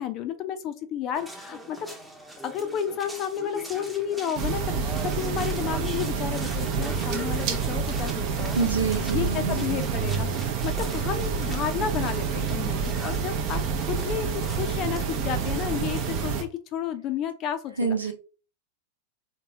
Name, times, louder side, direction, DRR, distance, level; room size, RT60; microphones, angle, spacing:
voice 1, 0.0-1.9 2.4-8.7 9.1-18.0, left 9 dB, 35° left, 10 dB, 0.5 m, -32 dB
sound 1, 1.1-16.4, right 1 dB, 5° right, 0.7 m, -43 dB
sound 2, 4.4-16.4, right 6 dB, 45° right, 0.6 m, -28 dB
voice 2, 8.5-9.8 17.8-18.1, right 5 dB, 80° right, 3 dB, 0.9 m, -27 dB
3.6 x 3.0 x 2.8 m, 0.35 s
figure-of-eight pair, 90°, 0 cm